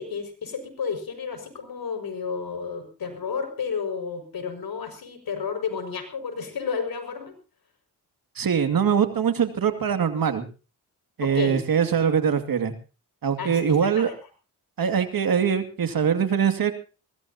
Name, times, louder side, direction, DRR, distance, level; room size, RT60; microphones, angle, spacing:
voice 1, 0.0-7.4 11.2-11.6 13.4-14.1, left 5 dB, 65° left, 8 dB, 6.0 m, -31 dB
voice 2, 8.4-10.5 11.2-12.7 13.2-14.1 14.8-16.7, right 7 dB, 60° right, 8 dB, 2.4 m, -22 dB
22.0 x 19.0 x 2.9 m, 0.34 s
cardioid pair, 65°, 39 cm